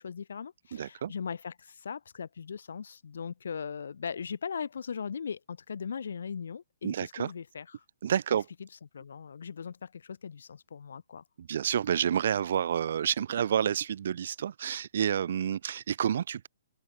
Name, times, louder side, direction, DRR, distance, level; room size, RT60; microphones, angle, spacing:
voice 1, 0.0-7.8 8.9-11.2, left 6 dB, 70° left, 5.2 m, -39 dB
voice 2, 0.7-1.1 6.8-7.3 8.0-8.5 11.4-16.5, right 9 dB, 60° right, 5.7 m, -29 dB
figure-of-eight pair, 125°, 0 cm